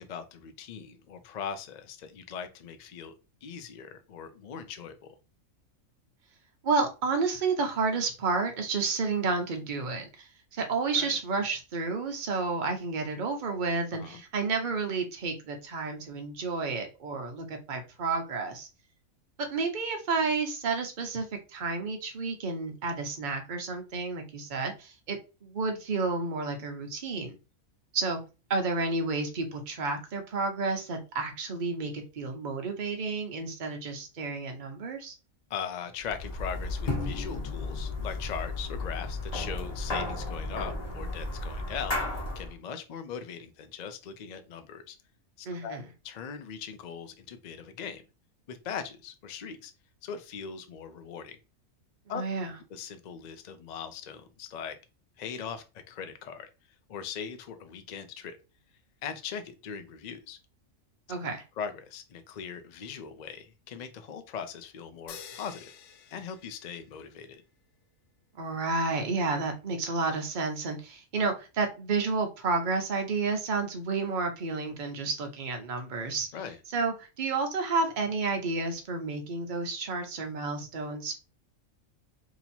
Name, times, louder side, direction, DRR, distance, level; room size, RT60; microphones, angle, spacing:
voice 1, 0.0-3.1 3.4-5.1 10.9-11.2 13.9-14.2 35.5-45.0 45.4-45.8 46.0-48.0 48.5-49.7 50.0-51.4 52.1-52.2 52.7-54.8 55.2-56.5 56.9-58.4 59.0-60.4 61.6-65.7 66.1-67.4 76.3-76.6, left 7 dB, 65° left, 9 dB, 0.4 m, -40 dB
voice 2, 6.6-18.7 19.4-21.2 21.5-27.4 27.9-28.2 28.5-35.1 45.5-45.8 52.1-52.5 61.1-61.4 68.4-76.3 76.7-81.2, right 4 dB, 45° right, 4 dB, 0.8 m, -31 dB
sound 1, 36.0-42.5, left 2 dB, 30° left, 1.1 m, -34 dB
sound 2, 65.1-67.2, left 7 dB, 85° left, 1.0 m, -48 dB
2.9 x 2.8 x 4.2 m, 0.30 s
omnidirectional pair, 1.4 m